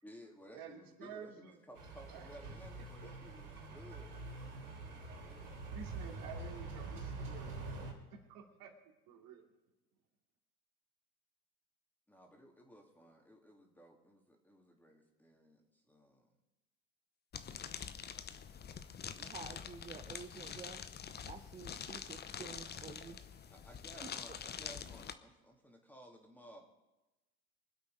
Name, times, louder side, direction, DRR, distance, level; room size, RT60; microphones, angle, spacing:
voice 1, 0.0-5.5 12.1-16.3 23.5-26.6, equal, 5° left, 3.1 m, -57 dB
voice 2, 0.5-1.6 2.1-2.3 5.7-7.8 8.3-8.7 9.1-9.5, right 7 dB, 50° right, 3.0 m, -51 dB
sound 1, 1.8-7.9, right 3 dB, 90° right, 3.4 m, -45 dB
sound 2, 17.3-25.1, left 7 dB, 20° left, 0.9 m, -46 dB
voice 3, 19.1-20.8 21.2-23.6 24.0-24.1, right 5 dB, 15° right, 0.8 m, -51 dB
25.0 x 8.3 x 5.1 m
hypercardioid pair, 90°, 44 cm